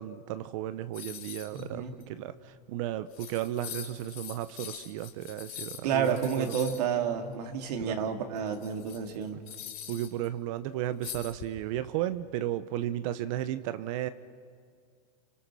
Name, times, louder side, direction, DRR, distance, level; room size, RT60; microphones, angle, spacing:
voice 1, 0.0-6.6 7.8-8.1 9.9-14.1, right 13 dB, 55° right, 12 dB, 1.0 m, -34 dB
sound 1, 0.9-1.6 2.0-2.1 2.8-2.9 3.1-6.8 8.4-10.3 11.0-11.8, left 11 dB, 60° left, 3.7 m, -43 dB
voice 2, 1.5-1.9 5.8-9.4, right 7 dB, 70° right, 4 dB, 3.1 m, -30 dB
29.0 x 26.0 x 6.3 m, 2.1 s
supercardioid pair, 140°, 21 cm